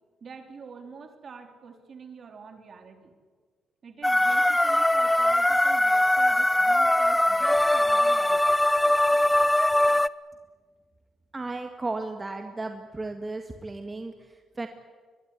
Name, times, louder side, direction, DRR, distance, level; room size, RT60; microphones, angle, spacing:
voice 1, 0.2-3.1 3.8-8.5, right 5 dB, 50° right, 5 dB, 3.8 m, -46 dB
sound 1, 4.0-10.1, left 1 dB, 10° left, 0.7 m, -21 dB
voice 2, 11.3-14.7, right 2 dB, 25° right, 5 dB, 2.0 m, -35 dB
23.0 x 22.0 x 9.8 m, 1.5 s
cardioid pair, 90°, 0 cm